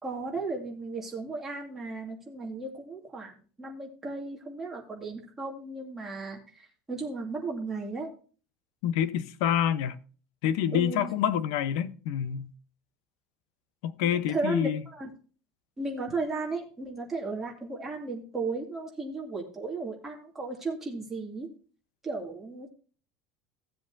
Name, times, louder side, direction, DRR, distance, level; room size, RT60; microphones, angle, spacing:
voice 1, 0.0-3.3 3.6-8.1 10.7-11.1 14.0-15.1 15.8-21.5 22.0-22.7, right 3 dB, 10° right, 2.6 m, -35 dB
voice 2, 8.8-10.0 10.4-12.5 13.8-14.8, left 9 dB, 70° left, 1.0 m, -27 dB
16.0 x 7.6 x 2.7 m
cardioid pair, 175°, 3 cm